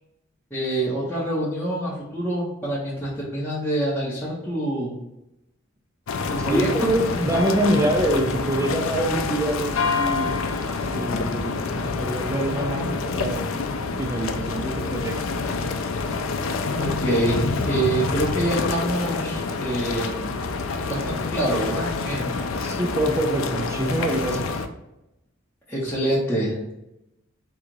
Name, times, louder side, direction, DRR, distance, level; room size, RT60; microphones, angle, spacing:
voice 1, 0.5-5.0 6.3-6.9 16.8-20.4 20.9-22.4 25.7-26.7, right 1 dB, 10° left, -10 dB, 0.9 m, -26 dB
sound 1, 6.1-24.7, left 4 dB, 75° left, 0.4 m, -27 dB
voice 2, 6.5-10.3 10.9-13.6 14.0-15.2 22.6-24.5, right 1 dB, 15° right, 2 dB, 0.4 m, -25 dB
3.8 x 2.4 x 4.6 m, 0.88 s
head